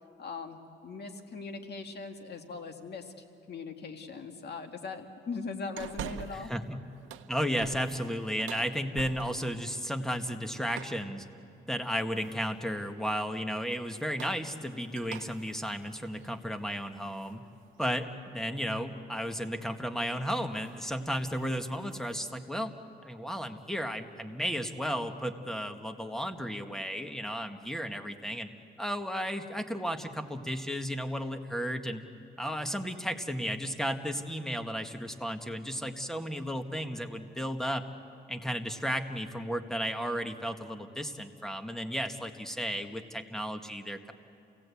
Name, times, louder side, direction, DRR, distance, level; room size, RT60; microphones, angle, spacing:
voice 1, 0.2-6.5, left 4 dB, 55° left, 5 dB, 2.1 m, -40 dB
sound 1, 5.8-6.6 6.9-9.6 10.7-11.1 12.2-12.6 13.9-17.3 17.8-17.9 19.4-19.7 20.0-20.2 20.6-20.8 21.1-22.2, right 10 dB, 85° right, 0.9 m, -46 dB
voice 2, 6.3-6.8 7.3-11.2 11.7-17.4 17.8-22.7 23.0-28.5 28.8-32.0 32.4-37.8 38.3-44.1, equal, ahead, 7 dB, 1.6 m, -34 dB
29.0 x 17.5 x 8.4 m, 2.6 s
cardioid pair, 90°, 20 cm